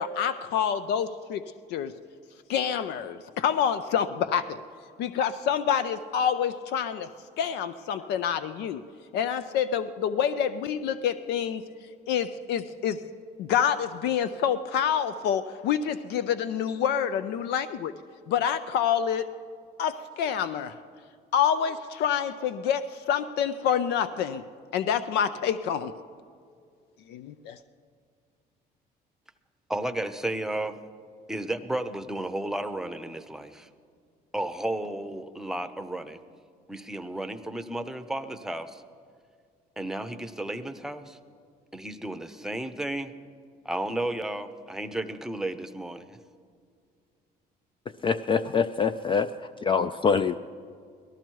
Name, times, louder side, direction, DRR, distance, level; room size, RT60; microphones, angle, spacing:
voice 1, 0.0-1.4 1.7-1.9 2.5-4.6 5.0-7.1 7.4-8.8 9.1-11.6 12.1-13.0 13.4-17.9 18.3-19.3 19.8-20.7 21.3-24.4 24.7-25.9 27.1-27.6, left 8 dB, 80° left, 12 dB, 0.5 m, -27 dB
voice 2, 29.7-30.8 31.3-33.7 34.3-36.2 36.7-38.8 39.8-41.2 41.7-43.1 43.6-46.2, right 1 dB, 5° right, 8 dB, 0.7 m, -33 dB
voice 3, 48.0-49.3 49.7-50.3, left 6 dB, 30° left, 11 dB, 0.3 m, -24 dB
18.0 x 13.5 x 4.6 m, 2.2 s
cardioid pair, 110°, 17 cm